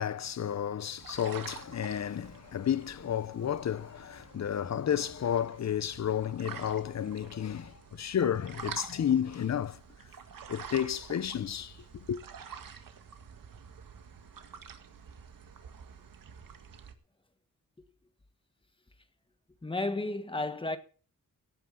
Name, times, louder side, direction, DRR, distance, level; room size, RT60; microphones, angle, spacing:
voice 1, 0.0-9.8 10.5-12.2, left 9 dB, 55° left, 0.7 m, -32 dB
sound 1, 1.0-16.9, right 6 dB, 80° right, 2.0 m, -48 dB
voice 2, 19.6-20.8, left 2 dB, 15° left, 1.4 m, -32 dB
17.5 x 9.0 x 5.7 m
wide cardioid pair, 165°, 33 cm